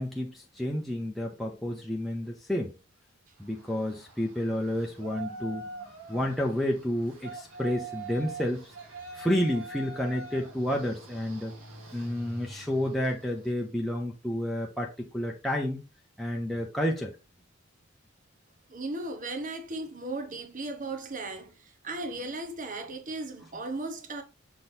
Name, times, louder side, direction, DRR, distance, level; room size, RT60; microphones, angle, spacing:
voice 1, 0.0-2.8 3.4-8.7 9.1-11.5 11.9-15.8 16.2-17.2, left 1 dB, ahead, 0.8 m, -30 dB
Yell, 3.4-13.6, right 3 dB, 85° right, 2.2 m, -44 dB
voice 2, 18.7-24.2, right 2 dB, 40° right, 1.1 m, -36 dB
6.7 x 3.8 x 4.3 m
head